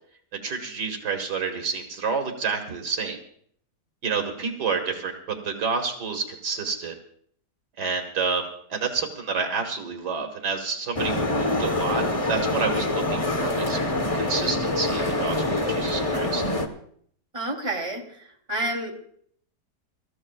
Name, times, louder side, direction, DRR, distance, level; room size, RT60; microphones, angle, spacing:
voice 1, 0.4-3.2 4.0-6.9 7.8-12.0 12.3-13.8 14.1-16.4, right 5 dB, 80° right, 4 dB, 2.3 m, -29 dB
sound 1, 11.0-16.7, left 2 dB, 25° left, 1.1 m, -25 dB
voice 2, 17.3-18.2 18.5-18.9, right 2 dB, 20° right, 0 dB, 3.2 m, -29 dB
27.0 x 14.5 x 2.4 m, 0.63 s
omnidirectional pair, 1.7 m